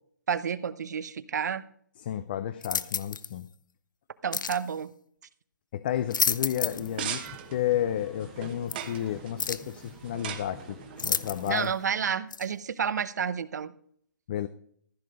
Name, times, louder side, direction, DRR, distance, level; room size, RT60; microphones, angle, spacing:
voice 1, 0.3-1.7 4.2-4.9 11.5-13.7, right 7 dB, 60° right, 16 dB, 0.8 m, -30 dB
voice 2, 2.0-3.5 5.7-7.2 7.5-11.7 14.3-14.5, left 11 dB, 30° left, 13 dB, 0.5 m, -31 dB
sound 1, 2.6-3.3 4.3-4.6 5.9-6.9 7.3-7.4 8.7-8.8 9.4-9.7 11.0-11.7 12.3-12.5, left 6 dB, 75° left, 0.7 m, -30 dB
sound 2, 5.9-11.6, right 1 dB, 5° left, 0.8 m, -52 dB
sound 3, 6.7-12.2, right 9 dB, 30° right, 1.1 m, -41 dB
14.5 x 6.6 x 5.0 m, 0.62 s
hypercardioid pair, 165°, 10 cm